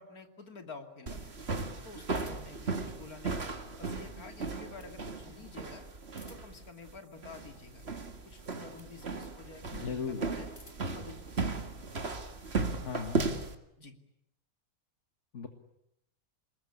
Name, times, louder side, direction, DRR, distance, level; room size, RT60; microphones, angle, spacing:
voice 1, 0.0-1.3 1.8-3.4 3.8-5.9 6.3-7.8 8.2-10.5 10.8-11.9 13.8-13.9, left 4 dB, 70° left, 6 dB, 3.2 m, -50 dB
sound 1, 1.1-13.5, right 3 dB, 40° right, 2.2 m, -36 dB
sound 2, 2.1-2.7 3.9-5.0 6.0-6.7 8.2-9.0 10.2-11.0, left 1 dB, 20° left, 3.3 m, -59 dB
voice 2, 9.7-10.3 12.8-13.3 15.3-15.5, left 5 dB, 50° left, 6 dB, 2.0 m, -37 dB
27.0 x 21.5 x 9.9 m, 0.79 s
omnidirectional pair, 1.6 m